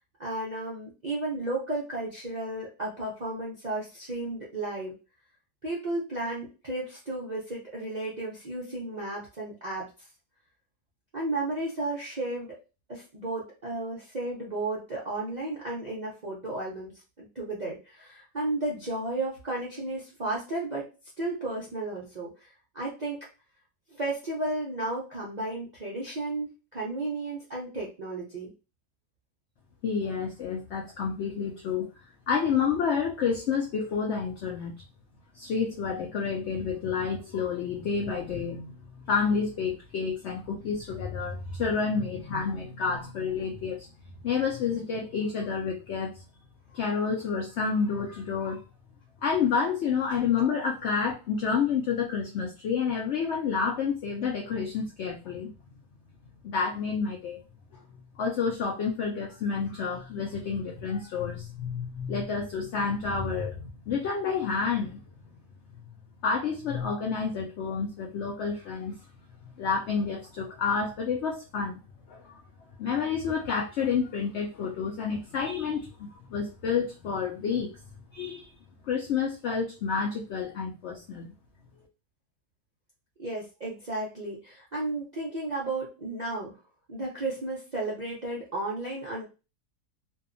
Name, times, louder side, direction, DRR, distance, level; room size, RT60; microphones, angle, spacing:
voice 1, 0.2-4.9 5.6-9.9 11.1-12.6 12.9-16.9 17.2-20.9 21.2-23.2 23.9-28.5 83.2-86.6 86.9-89.2, right 2 dB, 70° right, -5 dB, 0.4 m, -33 dB
voice 2, 29.8-31.9 32.3-34.7 35.3-38.8 39.1-43.9 44.2-46.2 46.7-48.6 49.2-55.5 56.4-57.4 58.2-65.0 66.2-69.0 69.6-71.8 72.1-72.4 72.8-77.7 78.1-78.5 78.9-81.3, left 6 dB, 85° left, 1 dB, 0.6 m, -29 dB
2.7 x 2.3 x 2.5 m, 0.30 s
omnidirectional pair, 1.7 m